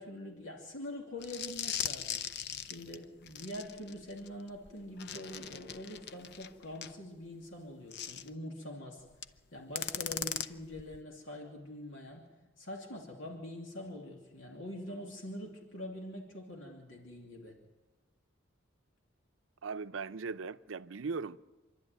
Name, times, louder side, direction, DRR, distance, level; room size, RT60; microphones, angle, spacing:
voice 1, 0.0-2.2 2.6-9.0 9.5-12.3 12.6-17.6, left 1 dB, 70° left, 2.8 m, -44 dB
sound 1, 1.2-6.9 7.9-8.3 9.1-9.4 9.8-11.0, left 9 dB, 55° left, 0.6 m, -39 dB
voice 2, 19.6-21.4, right 4 dB, 75° right, 0.6 m, -38 dB
26.0 x 12.0 x 9.1 m
head